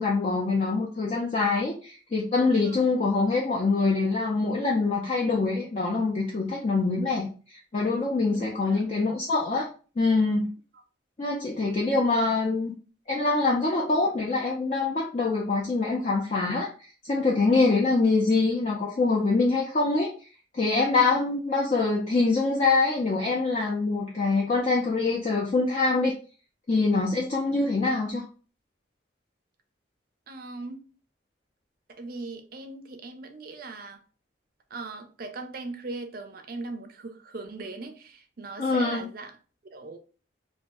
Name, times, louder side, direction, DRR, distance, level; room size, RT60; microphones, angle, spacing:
voice 1, 0.0-9.7 10.0-10.5 11.2-12.7 13.1-16.7 17.0-20.1 20.5-26.1 26.7-28.2 38.6-39.1, left 3 dB, 35° left, 0.4 m, -24 dB
voice 2, 2.6-2.9 8.3-8.8 21.1-21.2 30.3-30.8 32.0-34.0 34.7-39.3 39.7-40.0, right 3 dB, 50° right, 0.4 m, -39 dB
2.5 x 2.1 x 3.4 m
head